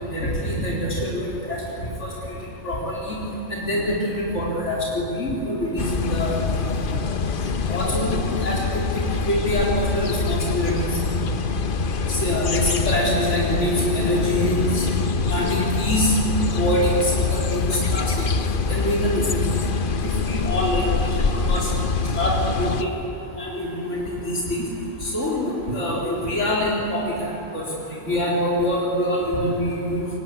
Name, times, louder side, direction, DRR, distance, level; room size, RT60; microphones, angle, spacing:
voice 1, 0.1-1.6 2.0-2.3 2.6-3.2 3.5-6.6 7.7-8.6 9.3-10.7 12.1-14.8 15.3-16.1 16.6-18.0 18.7-19.4 20.0-21.6 22.2-22.9 23.4-24.6 25.0-27.6 28.1-30.1, equal, 75° left, -4 dB, 4.2 m, -25 dB
sound 1, 5.8-22.8, left 4 dB, 50° left, 1.0 m, -24 dB
23.5 x 20.0 x 9.9 m, 3.0 s
omnidirectional pair, 1.2 m